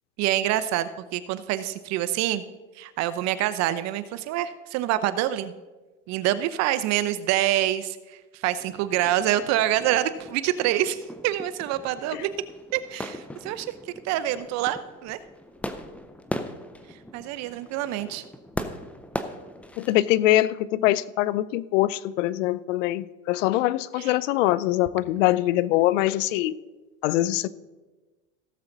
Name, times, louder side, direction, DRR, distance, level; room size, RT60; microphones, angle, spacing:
voice 1, 0.2-2.4 2.8-5.5 6.1-12.3 12.7-15.2 16.9-18.2 24.0-24.2, right 13 dB, 45° right, 13 dB, 0.7 m, -26 dB
sound 1, 8.6-19.9, left 1 dB, 5° left, 0.4 m, -39 dB
voice 2, 19.8-26.5 27.0-27.5, left 15 dB, 70° left, 19 dB, 0.6 m, -23 dB
16.5 x 7.2 x 3.9 m, 1.2 s
supercardioid pair, 125°, 38 cm